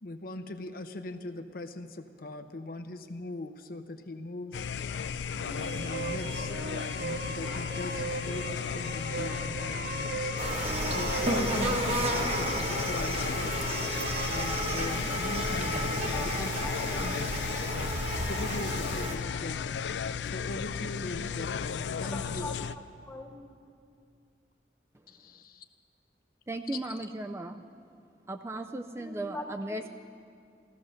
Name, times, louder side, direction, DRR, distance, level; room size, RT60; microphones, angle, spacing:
voice 1, 0.0-4.7 5.7-6.5 6.9-10.3 10.8-13.7 14.2-16.7 17.0-17.2 17.5-17.6 18.3-19.8 20.2-22.5 25.1-25.7 26.7-27.0, left 2 dB, 55° left, 7 dB, 0.7 m, -40 dB
sound 1, 4.5-22.8, left 7 dB, 90° left, 0.4 m, -34 dB
sound 2, 5.3-15.2, right 3 dB, 65° right, 0.6 m, -39 dB
sound 3, 10.4-19.2, right 1 dB, 35° right, 1.2 m, -32 dB
voice 2, 16.1-17.0 17.3-17.5 22.0-23.3 29.0-29.9, left 1 dB, 15° left, 3 dB, 1.2 m, -43 dB
voice 3, 26.5-27.6 28.3-29.9, right 2 dB, 15° right, 6 dB, 0.4 m, -36 dB
14.5 x 14.0 x 6.5 m, 2.4 s
head